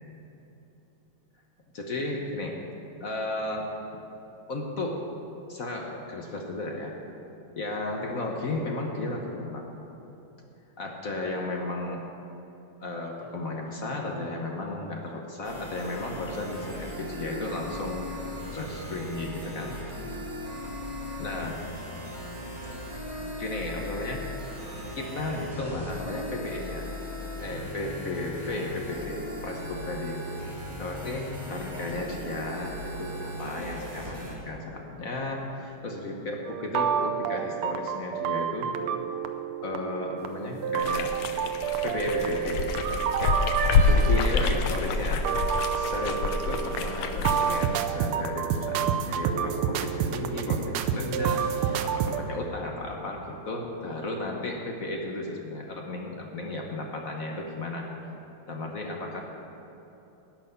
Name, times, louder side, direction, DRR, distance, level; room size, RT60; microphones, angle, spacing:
voice 1, 1.7-2.6 3.0-3.7 4.5-5.0 5.5-6.9 7.5-9.7 10.8-12.0 12.8-18.1 18.5-20.2 21.2-21.6 23.4-24.2 24.9-26.9 27.4-30.3 30.8-38.7 39.6-41.1 41.8-42.9 43.2-43.4 43.9-45.3 45.7-57.9 58.5-59.2, left 2 dB, 50° left, 1 dB, 1.2 m, -34 dB
sound 1, 15.4-34.3, left 1 dB, 20° right, 2.3 m, -38 dB
sound 2, 36.5-52.2, right 8 dB, 85° right, 1.5 m, -29 dB
sound 3, 40.8-47.7, left 4 dB, 80° left, 1.6 m, -27 dB
11.5 x 6.1 x 9.2 m, 3.0 s
omnidirectional pair, 2.3 m